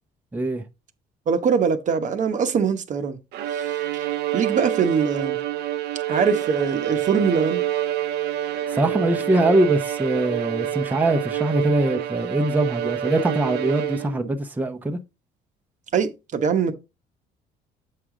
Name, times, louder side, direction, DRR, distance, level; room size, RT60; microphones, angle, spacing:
voice 1, 0.3-0.6 8.7-15.0, right 1 dB, 10° right, 0.8 m, -22 dB
voice 2, 1.3-3.2 3.5-4.1 4.3-5.4 6.1-7.6 15.9-16.7, right 6 dB, 45° right, 1.0 m, -23 dB
Bowed string instrument, 3.3-14.4, right 12 dB, 75° right, 0.7 m, -27 dB
7.5 x 4.8 x 3.7 m
cardioid pair, 110°, 17 cm